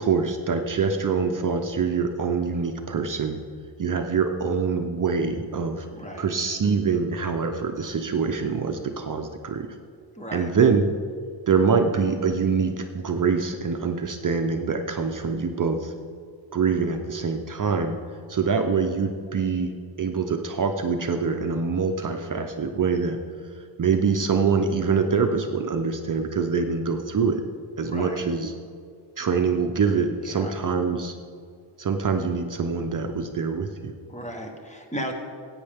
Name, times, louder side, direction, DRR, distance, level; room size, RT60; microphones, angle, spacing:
voice 1, 0.0-3.4 3.8-5.9 6.2-9.7 10.3-10.9 11.5-15.9 16.5-18.0 18.3-23.2 23.8-27.4 27.8-28.5 29.2-31.2 31.8-33.9, right 5 dB, 45° right, 5 dB, 0.6 m, -24 dB
voice 2, 5.9-6.3 10.1-10.5 27.9-28.2 30.2-30.6 34.1-35.1, equal, 15° left, 3 dB, 1.1 m, -35 dB
15.0 x 8.8 x 3.5 m, 2.2 s
wide cardioid pair, 160°, 46 cm